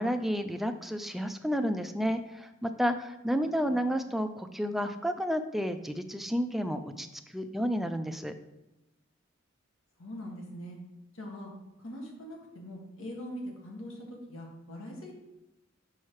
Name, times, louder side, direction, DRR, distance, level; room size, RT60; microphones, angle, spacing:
voice 1, 0.0-7.1 7.3-8.3, equal, ahead, 7 dB, 0.4 m, -31 dB
voice 2, 3.4-4.1 10.0-10.8 11.1-11.5 11.8-15.1, equal, 85° left, -1 dB, 1.8 m, -43 dB
5.8 x 5.6 x 4.7 m, 0.95 s
head